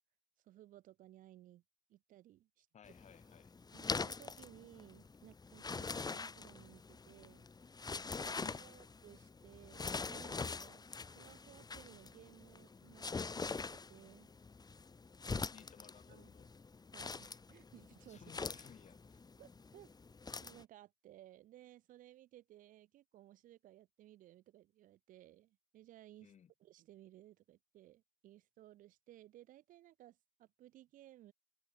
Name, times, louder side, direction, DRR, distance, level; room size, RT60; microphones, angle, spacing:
voice 1, 0.4-1.6 1.9-2.7 3.7-7.5 8.2-14.3 15.3-15.5 16.1-16.3 16.9-18.2 19.4-19.9 20.4-26.3 26.6-31.3, right 14 dB, 75° right, 2.0 m, -60 dB
voice 2, 2.7-3.5 8.4-8.7 15.3-16.5 18.1-19.2 26.2-26.5, left 8 dB, 55° left, 2.2 m, -59 dB
sound 1, 2.9-20.6, left 4 dB, 30° left, 1.2 m, -44 dB
supercardioid pair, 55°, 14 cm